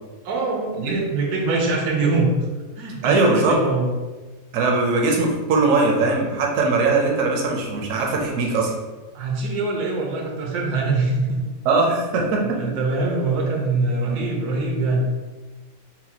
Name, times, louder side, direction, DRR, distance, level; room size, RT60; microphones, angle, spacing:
voice 1, 0.2-2.3 2.8-4.0 9.1-11.4 11.8-15.1, right 3 dB, 80° right, 0 dB, 1.3 m, -23 dB
voice 2, 3.0-3.6 4.5-8.7 11.6-12.6, right 3 dB, 65° right, 0 dB, 1.0 m, -20 dB
5.7 x 2.2 x 2.8 m, 1.3 s
omnidirectional pair, 1.6 m